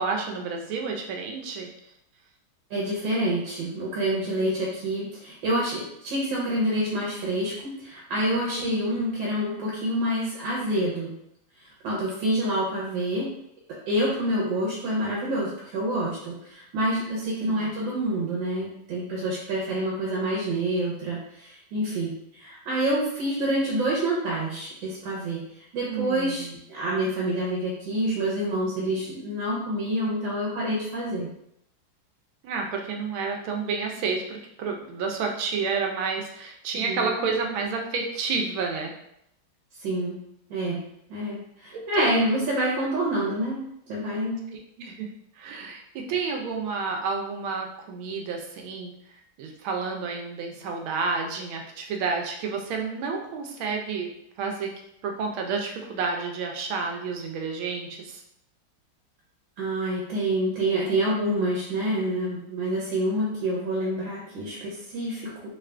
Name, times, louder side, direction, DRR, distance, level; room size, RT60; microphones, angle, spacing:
voice 1, 0.0-1.7 8.6-9.0 17.4-17.7 25.9-26.6 32.4-38.9 41.7-42.1 44.5-45.1 45.4-48.9 49.4-54.1 54.4-54.7 55.0-58.2, right 4 dB, 85° right, 2 dB, 1.5 m, -30 dB
voice 2, 2.7-11.1 11.6-13.3 13.9-31.3 36.8-37.1 39.8-40.2 40.5-40.8 41.1-43.6 43.9-44.4 44.8-44.9 59.6-65.5, right 1 dB, 70° right, -5 dB, 1.5 m, -27 dB
3.5 x 2.5 x 3.3 m, 0.77 s
omnidirectional pair, 2.2 m